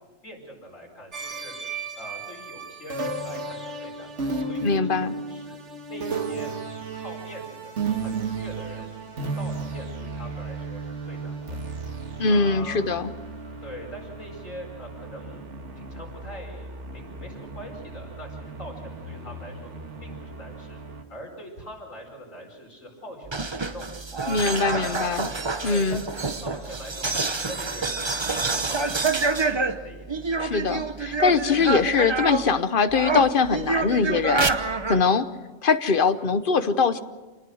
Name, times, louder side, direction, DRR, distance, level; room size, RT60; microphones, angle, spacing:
voice 1, 0.2-1.5 1.9-5.6 5.9-6.5 6.9-7.7 8.0-8.9 9.4-11.6 12.2-12.8 13.6-15.4 15.8-19.7 20.0-20.8 21.1-23.9 24.6-25.1 25.6-28.0 28.3-30.3, equal, 85° left, 1 dB, 5.3 m, -42 dB
sound 1, 1.1-21.0, right 3 dB, 65° right, 2.1 m, -34 dB
voice 2, 4.6-5.1 12.2-13.1 24.3-25.3 25.6-26.0 30.4-35.3 35.6-37.0, left 5 dB, 45° left, 12 dB, 1.0 m, -22 dB
sound 2, 23.2-32.6 32.9-35.0, right 4 dB, 25° right, 0.8 m, -27 dB
27.5 x 19.5 x 6.3 m, 1.3 s
omnidirectional pair, 1.3 m